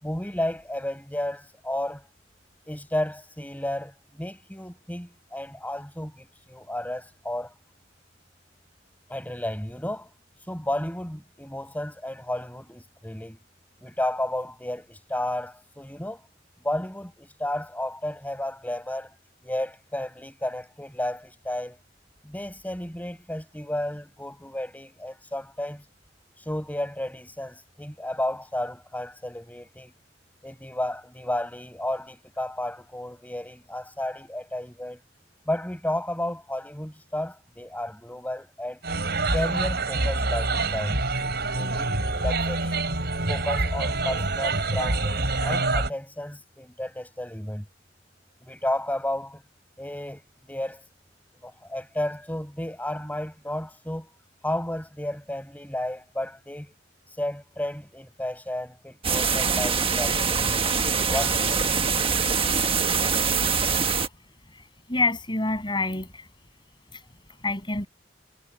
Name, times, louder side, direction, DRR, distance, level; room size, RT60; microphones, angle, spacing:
voice 1, 0.0-2.0 2.7-7.5 9.1-10.1 10.5-13.4 13.8-16.2 16.6-19.1 19.4-21.8 22.2-25.8 26.4-29.9 30.4-35.0 35.5-38.8 39.3-41.0 41.5-42.8 43.3-47.6 48.5-49.4 49.8-50.2 50.5-50.8 51.4-54.1 54.4-56.7 57.2-60.7 61.1-61.7, left 1 dB, 10° left, 6.6 m, -32 dB
sound 1, 38.8-45.9, right 2 dB, 60° right, 5.6 m, -26 dB
sound 2, 59.0-64.1, right 5 dB, 30° right, 1.3 m, -24 dB
voice 2, 64.5-66.3 66.9-67.0 67.4-67.9, left 2 dB, 25° left, 7.2 m, -27 dB
head